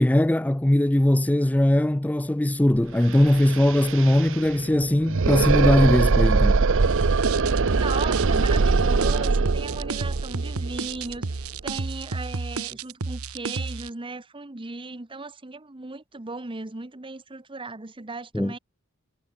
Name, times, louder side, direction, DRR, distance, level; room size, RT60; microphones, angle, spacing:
voice 1, 0.0-6.6 18.3-18.5, left 1 dB, 5° left, 0.4 m, -20 dB
sound 1, 2.7-2.8 3.1-11.9, right 4 dB, 65° right, 0.7 m, -22 dB
sound 2, 6.8-13.9, right 4 dB, 80° right, 1.1 m, -31 dB
voice 2, 7.7-18.6, right 3 dB, 25° right, 1.0 m, -37 dB
head